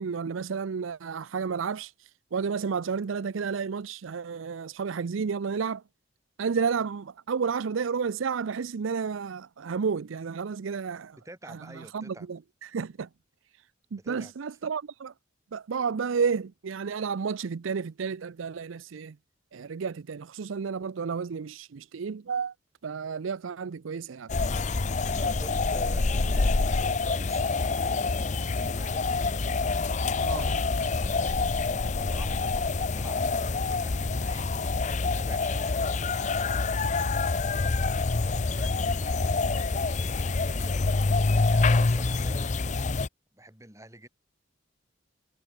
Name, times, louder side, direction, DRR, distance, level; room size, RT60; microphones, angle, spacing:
voice 1, 0.0-1.9 2.3-5.8 6.4-11.2 11.5-13.1 13.9-15.1 15.5-19.2 19.5-22.5 22.8-24.3 30.2-30.5, right 5 dB, 85° right, 0.5 m, -31 dB
voice 2, 11.2-12.3 13.9-14.3 25.1-29.1 30.2-34.5 34.8-36.1 38.2-40.8 41.3-42.5 43.3-44.1, right 1 dB, 15° right, 4.4 m, -48 dB
sound 1, 24.3-43.1, left 3 dB, 35° left, 0.6 m, -26 dB
head